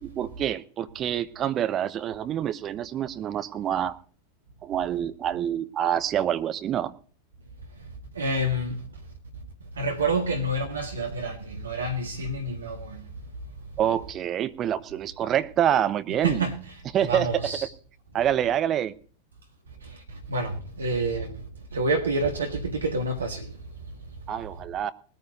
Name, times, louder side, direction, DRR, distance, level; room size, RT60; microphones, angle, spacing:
voice 1, 0.0-3.9 4.6-6.9 13.8-16.5 16.9-17.6 18.1-18.9 24.3-24.9, right 10 dB, 30° right, 1.0 m, -26 dB
voice 2, 8.1-8.8 9.8-13.0 16.2-16.6 17.0-17.7 20.3-21.4 21.7-23.5, right 2 dB, 70° right, 1.6 m, -28 dB
20.0 x 9.4 x 3.9 m
figure-of-eight pair, 90°, 0 cm